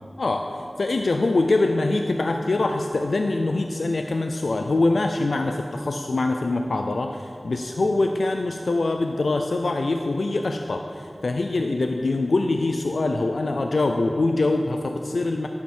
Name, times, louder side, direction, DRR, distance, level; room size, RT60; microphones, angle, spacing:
voice 1, 0.2-15.5, left 2 dB, 85° left, 4 dB, 0.4 m, -24 dB
12.0 x 9.5 x 4.4 m, 2.6 s
wide cardioid pair, 45°, 0 cm